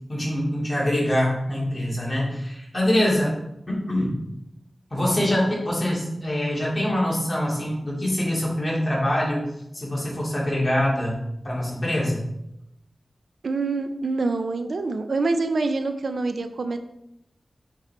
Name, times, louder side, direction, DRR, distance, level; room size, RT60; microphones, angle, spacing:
voice 1, 0.1-3.4 3.7-4.2 4.9-9.5 9.7-11.2 11.4-12.2, left 1 dB, 25° left, -5 dB, 2.8 m, -24 dB
voice 2, 13.4-16.8, right 3 dB, 75° right, 8 dB, 0.5 m, -26 dB
7.4 x 4.3 x 4.3 m, 0.82 s
wide cardioid pair, 95°, 0 cm